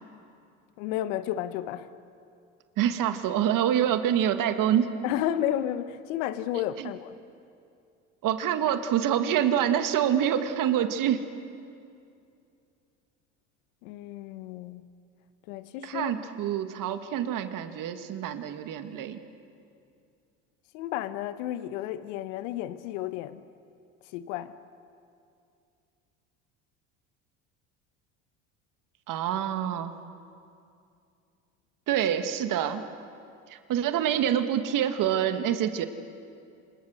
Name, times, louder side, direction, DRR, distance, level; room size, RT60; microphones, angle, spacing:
voice 1, 0.8-1.9 5.0-7.2 13.8-14.8 15.5-16.1 20.7-23.4 24.1-24.5, left 12 dB, 80° left, 12 dB, 1.1 m, -32 dB
voice 2, 2.8-4.9 6.8-6.9 8.2-11.2 15.8-19.2 29.1-29.9 31.9-32.8 33.5-35.9, right 10 dB, 60° right, 8 dB, 2.0 m, -26 dB
28.5 x 26.0 x 6.5 m, 2.5 s
hypercardioid pair, 75°, 37 cm